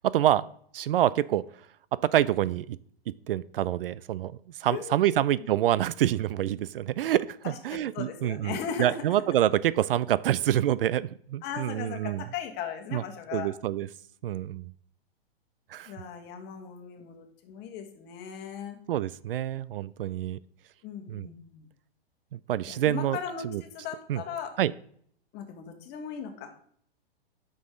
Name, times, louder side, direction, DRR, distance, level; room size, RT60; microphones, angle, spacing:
voice 1, 0.0-0.5 0.7-1.4 1.9-2.8 3.3-4.3 4.6-12.2 12.9-13.0 13.3-13.9 14.2-14.7 15.7-15.9 18.9-20.4 21.1-21.3 22.3-23.2 23.5-23.6 24.1-24.2 24.6-24.7, right 12 dB, 65° right, 19 dB, 0.4 m, -26 dB
voice 2, 4.7-5.3 7.4-9.2 11.4-13.5 15.9-18.8 20.8-21.7 22.7-24.5 25.3-26.6, left 7 dB, 35° left, 5 dB, 1.6 m, -38 dB
9.4 x 6.4 x 3.8 m, 0.62 s
hypercardioid pair, 115°, 30 cm